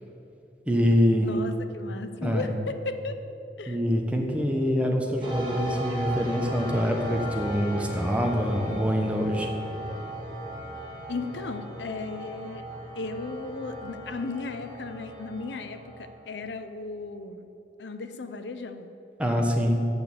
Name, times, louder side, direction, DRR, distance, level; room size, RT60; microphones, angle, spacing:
voice 1, 0.7-1.4 2.2-2.5 3.7-9.5 19.2-19.8, equal, 5° right, 1 dB, 1.1 m, -25 dB
voice 2, 1.2-3.2 3.6-3.8 11.1-12.6 13.0-17.4 17.8-18.9, left 3 dB, 75° left, 9 dB, 0.6 m, -35 dB
sound 1, 5.2-16.4, right 1 dB, 30° right, 2.0 m, -36 dB
8.6 x 6.8 x 8.5 m, 2.9 s
head